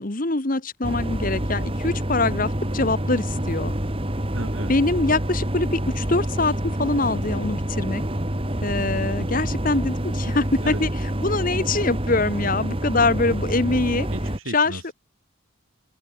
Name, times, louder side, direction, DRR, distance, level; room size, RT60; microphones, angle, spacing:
voice 1, 0.0-3.7 4.7-8.0 8.6-14.1 14.5-14.9, left 3 dB, 40° left, 1.4 m, -24 dB
sound 1, 0.8-14.4, right 1 dB, 25° right, 2.9 m, -27 dB
voice 2, 4.3-4.7 10.6-10.8 14.1-14.9, right 1 dB, 75° right, 6.4 m, -35 dB
open air
head